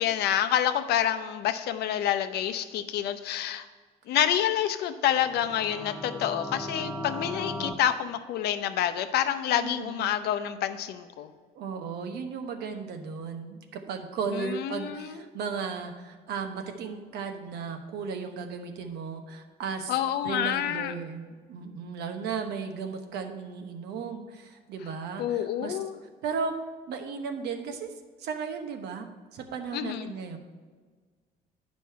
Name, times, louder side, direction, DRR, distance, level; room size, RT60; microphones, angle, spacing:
voice 1, 0.0-3.6 4.1-11.3 14.3-15.2 19.9-20.9 25.2-25.9 29.7-30.1, left 10 dB, 75° left, 10 dB, 0.6 m, -28 dB
sound 1, 5.2-7.7, left 1 dB, 5° left, 0.9 m, -37 dB
voice 2, 9.6-10.1 11.5-20.0 20.2-25.8 26.2-26.5 26.9-27.9 28.2-29.1 29.3-30.4, right 5 dB, 75° right, 6 dB, 1.0 m, -35 dB
9.4 x 5.2 x 4.6 m, 1.5 s
cardioid pair, 110°, 17 cm